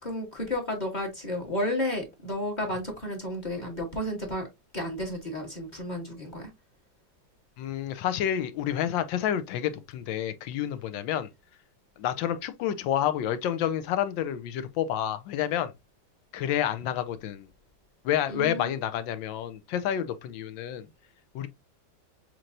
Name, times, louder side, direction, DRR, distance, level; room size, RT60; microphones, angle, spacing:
voice 1, 0.0-4.5 4.7-6.5 18.3-18.8, left 1 dB, 30° left, 1.0 m, -32 dB
voice 2, 7.6-11.3 12.0-15.7 16.3-17.5 18.0-20.9 21.3-21.5, left 10 dB, 85° left, 1.3 m, -29 dB
6.3 x 3.0 x 2.5 m
omnidirectional pair, 2.1 m